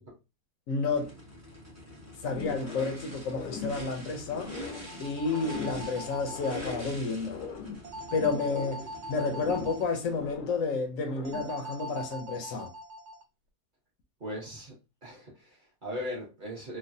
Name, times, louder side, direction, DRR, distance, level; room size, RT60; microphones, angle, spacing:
voice 1, 0.7-1.1 2.2-4.5 5.0-7.4 8.1-12.7, left 4 dB, 65° left, 0.9 m, -31 dB
Race car auto racing / Idling / Accelerating revving vroom, 0.9-10.3, equal, 15° right, 0.5 m, -45 dB
sound 1, 2.3-3.0 3.2-4.9 5.2-6.9 7.2-8.9 9.1-10.7 11.0-11.6, left 6 dB, 90° left, 1.2 m, -41 dB
sound 2, 4.6-6.6 7.8-9.8 11.2-13.2, equal, 70° right, 0.7 m, -42 dB
voice 2, 14.2-14.7 15.0-16.8, equal, 35° right, 0.9 m, -38 dB
3.2 x 2.2 x 2.5 m
omnidirectional pair, 1.7 m